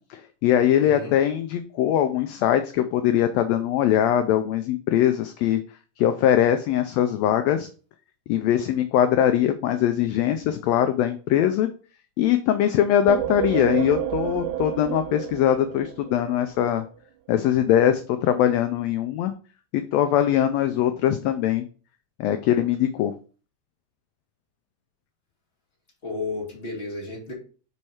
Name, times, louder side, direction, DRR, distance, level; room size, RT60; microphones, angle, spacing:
voice 1, 0.1-5.6 6.0-7.7 8.3-11.7 12.2-16.8 17.3-19.3 19.7-21.7 22.2-23.1, left 10 dB, 80° left, 8 dB, 1.6 m, -21 dB
voice 2, 0.8-1.1 26.0-27.3, left 3 dB, 20° left, -4 dB, 2.2 m, -33 dB
sound 1, 13.1-16.7, right 12 dB, 90° right, 2.0 m, -30 dB
5.4 x 4.7 x 4.2 m, 0.38 s
omnidirectional pair, 3.4 m